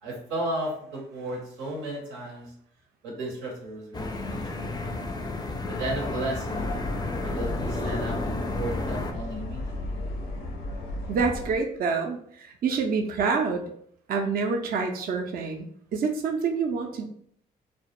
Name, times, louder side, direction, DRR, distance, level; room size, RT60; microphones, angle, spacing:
voice 1, 0.0-2.5 3.0-5.1 5.7-6.7 7.2-9.9, right 1 dB, 85° right, -1 dB, 0.7 m, -34 dB
sound 1, 3.9-9.1, left 2 dB, 20° left, 0.4 m, -32 dB
sound 2, 6.5-11.6, left 2 dB, 80° left, 0.5 m, -34 dB
voice 2, 11.1-13.7 14.1-17.1, right 5 dB, 45° right, 3 dB, 0.4 m, -27 dB
2.1 x 2.0 x 2.9 m, 0.65 s
supercardioid pair, 50°, 20 cm